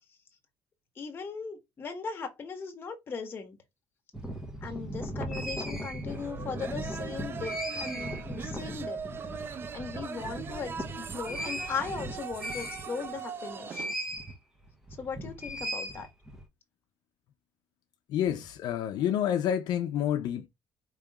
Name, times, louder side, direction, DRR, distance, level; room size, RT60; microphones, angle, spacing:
voice 1, 1.0-3.6 4.6-9.0 9.7-13.8 15.0-16.1, left 5 dB, 30° left, 1.2 m, -38 dB
sound 1, 4.1-13.2 13.7-14.3 14.6-16.4, equal, 5° right, 0.9 m, -38 dB
sound 2, 6.1-13.9, right 6 dB, 30° right, 0.4 m, -40 dB
voice 2, 18.1-20.5, left 10 dB, 70° left, 0.6 m, -28 dB
5.0 x 3.0 x 3.5 m
cardioid pair, 175°, 8 cm